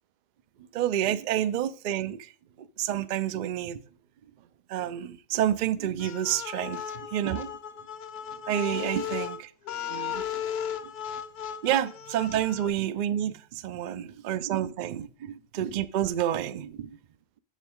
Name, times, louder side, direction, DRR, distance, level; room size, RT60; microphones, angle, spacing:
voice 1, 0.7-2.3 2.6-3.8 4.7-7.5 8.5-9.4 9.9-10.2 11.6-16.9, right 11 dB, 65° right, 0.4 m, -29 dB
sound 1, 6.0-12.7, left 8 dB, 60° left, 0.9 m, -36 dB
7.3 x 7.0 x 3.6 m
omnidirectional pair, 1.2 m